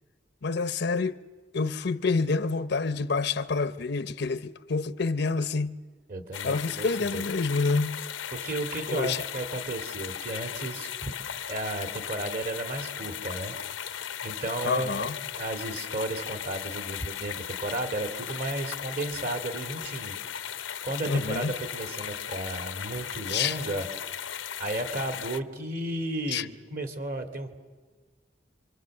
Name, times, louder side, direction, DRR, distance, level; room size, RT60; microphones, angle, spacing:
voice 1, 0.4-1.2 1.5-5.8 6.4-8.0 8.9-9.2 14.6-15.2 21.1-21.5 23.3-23.6 26.3-26.4, left 4 dB, 60° left, 0.7 m, -28 dB
voice 2, 6.1-7.3 8.3-11.1 11.5-20.6 20.8-23.9 24.6-27.6, right 1 dB, 50° right, 2.4 m, -34 dB
sound 1, 6.3-25.4, left 9 dB, 90° left, 0.8 m, -37 dB
27.5 x 24.5 x 7.7 m
head